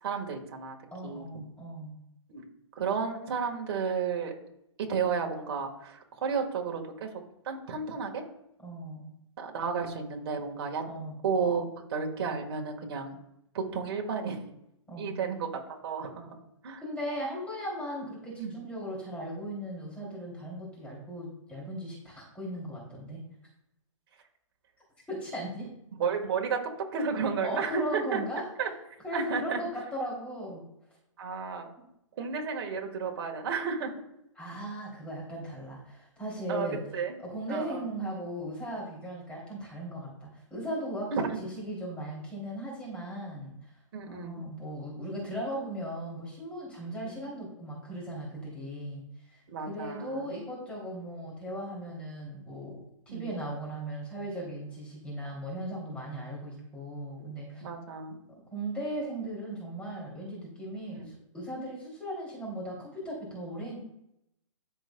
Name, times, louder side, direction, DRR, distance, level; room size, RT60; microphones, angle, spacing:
voice 1, 0.0-0.8 1.0-1.3 2.3-2.5 2.8-4.3 4.8-7.1 7.5-8.2 9.4-10.8 11.2-13.2 13.5-14.5 15.0-16.4 16.6-16.8 18.4-18.5 26.0-28.2 28.6-28.7 29.1-29.6 31.2-31.7 32.2-33.9 36.5-37.2 37.5-37.9 41.1-41.4 43.9-44.4 47.0-47.1 49.5-50.3 53.1-53.3 57.2-57.3 57.6-58.2 61.0-61.1, right 5 dB, 45° right, 2 dB, 1.7 m, -32 dB
voice 2, 0.9-1.9 8.6-9.1 10.8-11.2 14.9-15.1 16.8-23.2 25.1-25.7 27.4-28.4 29.0-30.6 31.8-31.9 34.4-36.8 37.2-43.5 44.1-57.7 58.5-63.8, right 1 dB, 5° left, -5 dB, 3.0 m, -37 dB
13.5 x 4.9 x 2.3 m, 0.80 s
hypercardioid pair, 145°, 17 cm